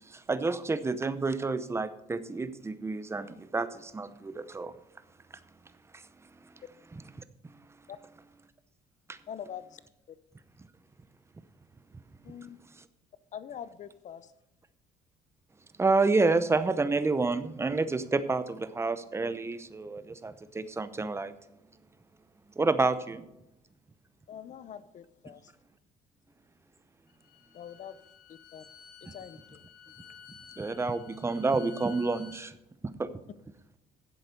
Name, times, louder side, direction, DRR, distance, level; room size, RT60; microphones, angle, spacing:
voice 1, 0.1-4.7 5.9-6.0 6.4-6.5 6.9-7.0 9.1-9.2 15.8-21.3 22.6-23.2 29.1-29.2 30.6-32.6 33.0-33.1, right 3 dB, 15° right, 13 dB, 0.7 m, -29 dB
voice 2, 9.3-9.8 10.1-10.2 12.2-12.6 13.3-14.3 24.3-25.5 27.5-28.0 28.3-28.6 29.0-29.6, left 9 dB, 45° left, 15 dB, 0.7 m, -44 dB
Bowed string instrument, 27.1-32.4, left 8 dB, 70° left, 1.4 m, -53 dB
11.0 x 7.8 x 5.2 m, 0.92 s
cardioid pair, 110°, 17 cm